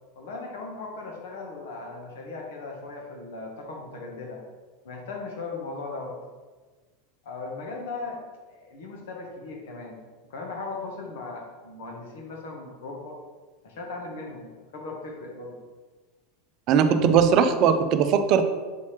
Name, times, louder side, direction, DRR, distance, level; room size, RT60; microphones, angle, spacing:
voice 1, 0.1-4.4 4.8-6.2 7.2-8.2 8.5-10.0 10.3-13.2 13.6-15.6 17.0-17.2, left 3 dB, 70° left, 1 dB, 1.2 m, -37 dB
voice 2, 16.7-18.4, right 7 dB, 50° right, 8 dB, 0.5 m, -19 dB
7.3 x 4.2 x 3.3 m, 1.4 s
hypercardioid pair, 85°, 0 cm